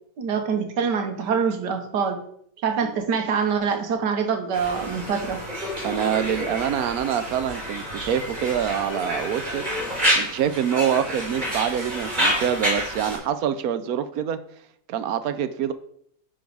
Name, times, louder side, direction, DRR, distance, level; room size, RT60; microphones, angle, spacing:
voice 1, 0.2-2.2 2.6-5.4, right 6 dB, 85° right, 6 dB, 1.6 m, -25 dB
Conversation, 4.5-13.2, equal, 25° right, 3.8 m, -28 dB
voice 2, 5.8-9.7 10.1-14.4 14.9-15.7, right 9 dB, 70° right, 12 dB, 1.0 m, -25 dB
10.0 x 3.9 x 4.7 m, 0.67 s
omnidirectional pair, 1.8 m